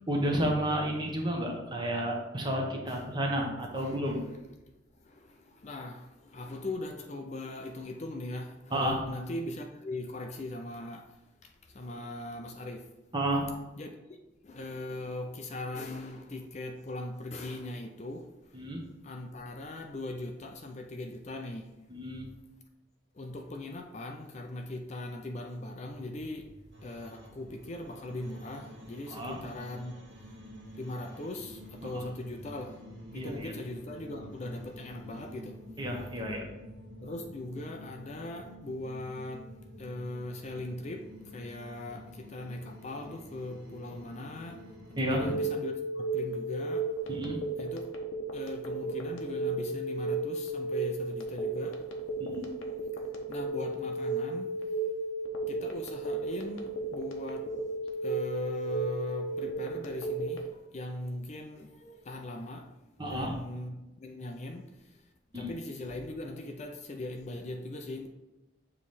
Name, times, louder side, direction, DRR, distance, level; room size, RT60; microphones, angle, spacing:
voice 1, 0.1-4.2 8.7-9.0 13.1-13.5 18.5-18.8 21.9-22.3 29.1-29.4 31.8-32.0 33.1-33.5 35.8-36.5 45.0-45.4 47.1-47.4 52.2-52.5 63.0-63.3 65.3-65.5, right 1 dB, 20° right, 0.9 m, -31 dB
voice 2, 2.8-3.2 3.7-4.4 5.0-12.9 13.8-14.2 14.4-18.3 19.0-21.7 23.1-26.5 26.8-29.9 30.2-30.3 30.8-32.8 33.1-35.6 37.0-39.5 39.8-44.6 44.9-46.9 47.6-47.9 48.3-51.8 52.9-54.5 55.5-57.5 58.0-65.0 65.3-68.1, left 1 dB, 35° left, 0.5 m, -40 dB
sound 1, 25.9-45.0, equal, 60° right, 1.4 m, -49 dB
Telephone, 45.2-60.5, right 1 dB, 90° left, 0.9 m, -34 dB
7.2 x 3.2 x 4.2 m
head